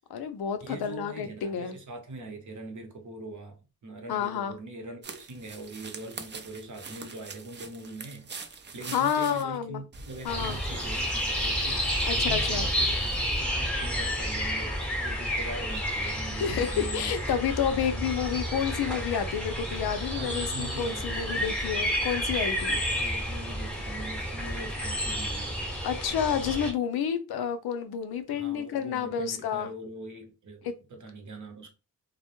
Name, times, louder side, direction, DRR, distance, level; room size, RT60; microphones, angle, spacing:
voice 1, 0.1-1.7 4.1-4.6 8.9-9.8 10.2-10.6 12.0-12.7 16.3-22.8 25.8-29.7 30.6-30.7, left 8 dB, 80° left, 0.5 m, -30 dB
voice 2, 0.6-13.1 13.4-17.2 20.2-21.6 22.9-25.5 28.3-31.7, right 2 dB, 55° right, 0.8 m, -42 dB
sound 1, 5.0-9.4 9.9-13.4, right 4 dB, 30° right, 0.4 m, -45 dB
sound 2, 10.3-26.7, equal, 5° left, 0.9 m, -30 dB
2.2 x 2.0 x 2.9 m
cardioid pair, 55°, 37 cm